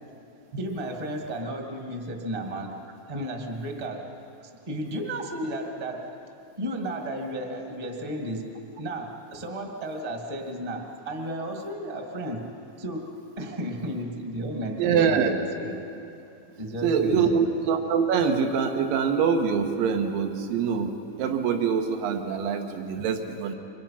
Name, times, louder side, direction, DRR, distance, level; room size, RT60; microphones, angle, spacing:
voice 1, 0.6-2.8 3.1-4.1 4.7-6.1 6.6-8.5 8.8-12.5 12.8-13.1 13.4-15.8 16.6-17.4, right 1 dB, 15° right, 2 dB, 1.4 m, -33 dB
voice 2, 14.8-15.3 16.8-23.6, right 6 dB, 70° right, 5 dB, 3.1 m, -24 dB
28.0 x 24.5 x 5.9 m, 2.8 s
omnidirectional pair, 4.4 m